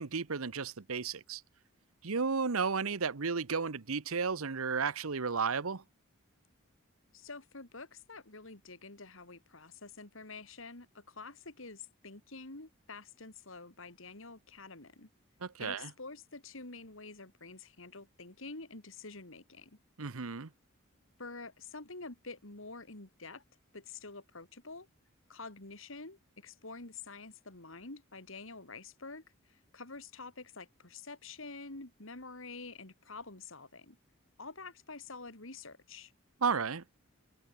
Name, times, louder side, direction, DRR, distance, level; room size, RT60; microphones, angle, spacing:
voice 1, 0.0-1.4 2.0-5.8 15.4-15.9 20.0-20.5 36.4-36.8, right 5 dB, 80° right, 0.9 m, -33 dB
voice 2, 7.1-15.1 15.6-19.7 21.2-23.4 23.7-24.9 25.3-29.2 29.5-34.0 34.4-36.1, left 3 dB, 70° left, 2.9 m, -48 dB
head